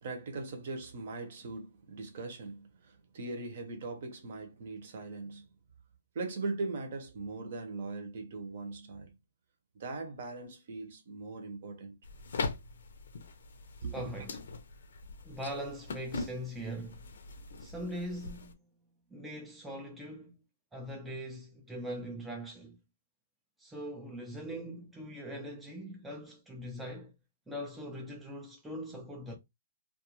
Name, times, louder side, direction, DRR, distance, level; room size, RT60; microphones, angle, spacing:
voice 1, 0.0-5.5 6.1-9.1 9.7-12.0 13.8-14.0, right 3 dB, 50° right, 0.8 m, -40 dB
sound 1, 12.0-18.5, left 4 dB, 75° left, 0.6 m, -41 dB
voice 2, 13.9-14.4 15.2-17.1 17.6-18.6 19.1-20.3 20.7-22.8 23.6-27.1 27.5-29.4, equal, 5° right, 0.4 m, -41 dB
2.4 x 2.3 x 2.9 m
hypercardioid pair, 160°, 0 cm